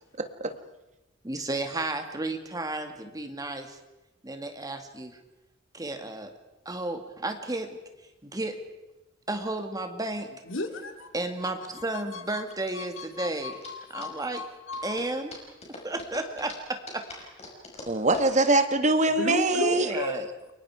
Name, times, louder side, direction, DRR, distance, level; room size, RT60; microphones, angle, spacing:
voice 1, 0.2-0.5 17.9-19.9, right 2 dB, 40° right, 8 dB, 1.6 m, -23 dB
voice 2, 1.2-3.8 4.2-5.2 5.7-6.3 6.7-7.8 8.2-8.6 9.3-10.3 11.1-13.6 13.9-14.4 14.8-15.4 15.8-17.1 19.7-20.2, right 2 dB, 20° right, 6 dB, 2.1 m, -33 dB
voice 3, 10.5-11.1 11.4-12.4 12.7-15.0 19.2-20.2, left 2 dB, 80° left, 5 dB, 2.7 m, -34 dB
sound 1, 10.7-19.6, left 2 dB, 35° left, 5.7 m, -45 dB
30.0 x 22.5 x 4.9 m, 0.99 s
head